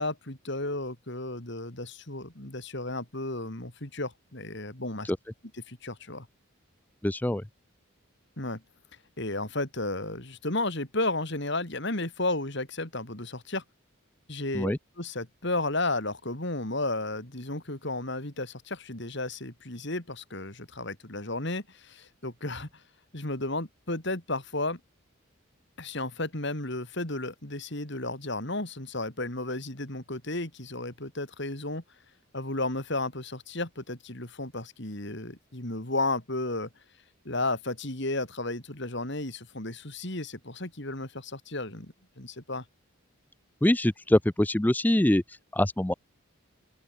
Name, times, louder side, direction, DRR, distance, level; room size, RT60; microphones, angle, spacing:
voice 1, 0.0-5.1 5.5-6.3 8.4-8.6 9.2-13.6 14.3-22.7 23.1-24.8 25.8-31.8 32.3-36.7 37.2-42.6, left 2 dB, 55° left, 3.5 m, -33 dB
voice 2, 7.0-7.4 14.5-14.8 43.6-45.9, left 1 dB, 10° left, 0.4 m, -24 dB
open air
head